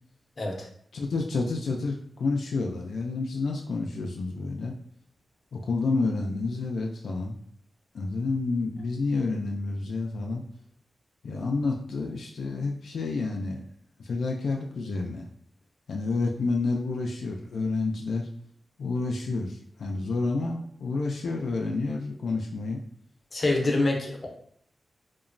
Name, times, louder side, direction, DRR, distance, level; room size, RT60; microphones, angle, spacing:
voice 1, 0.4-0.7 23.3-24.3, left 2 dB, 40° left, -1 dB, 0.6 m, -26 dB
voice 2, 0.9-4.8 5.5-7.4 7.9-10.4 11.2-13.7 14.0-15.3 15.9-18.3 18.8-22.8, left 3 dB, 85° left, 0 dB, 0.3 m, -29 dB
2.9 x 2.1 x 2.5 m, 0.66 s
wide cardioid pair, 130°, 0 cm